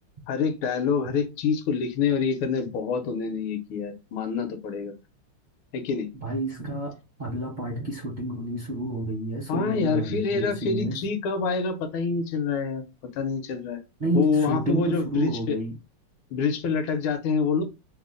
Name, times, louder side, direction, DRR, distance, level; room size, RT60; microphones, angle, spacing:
voice 1, 0.3-4.9 5.7-6.1 9.5-12.8 13.1-13.8 14.1-15.6 16.3-17.6, left 5 dB, 75° left, 1.5 m, -26 dB
voice 2, 6.2-6.9 7.2-11.0 14.0-15.7, right 1 dB, 55° right, 0.5 m, -29 dB
3.6 x 2.0 x 3.7 m
omnidirectional pair, 2.4 m